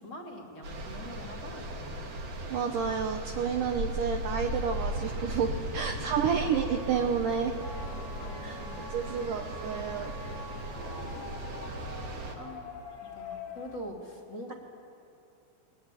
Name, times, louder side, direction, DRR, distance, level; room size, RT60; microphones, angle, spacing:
voice 1, 0.0-2.0 5.9-6.5 8.1-8.9 10.6-11.2 11.8-12.0 12.4-12.7 13.0-14.5, left 1 dB, 30° left, 1 dB, 2.6 m, -45 dB
sound 1, 0.6-12.4, right 1 dB, 45° right, 2.5 m, -37 dB
voice 2, 2.4-7.6 8.4-8.6 8.9-10.1, right 7 dB, 85° right, 4 dB, 1.8 m, -30 dB
sound 2, 5.1-14.0, right 2 dB, 25° right, 4.1 m, -49 dB
sound 3, 7.6-13.8, left 5 dB, 55° left, 1.6 m, -46 dB
22.5 x 20.5 x 9.9 m, 2.8 s
omnidirectional pair, 5.3 m